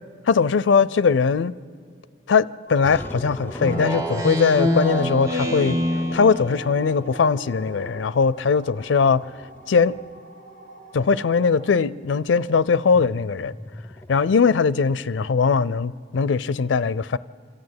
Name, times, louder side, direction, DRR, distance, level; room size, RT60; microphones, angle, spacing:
voice 1, 0.3-1.5 2.3-5.8 6.1-9.3 9.7-10.0 10.9-13.5 14.1-17.2, left 5 dB, 80° left, 0.4 m, -20 dB
sound 1, 2.7-11.7, equal, 45° right, 1.4 m, -43 dB
sound 2, 2.8-8.1 9.0-10.2 12.9-14.5, equal, 10° left, 0.5 m, -38 dB
Speech synthesizer, 3.6-6.7, left 1 dB, 20° right, 1.1 m, -25 dB
26.0 x 13.5 x 9.5 m
head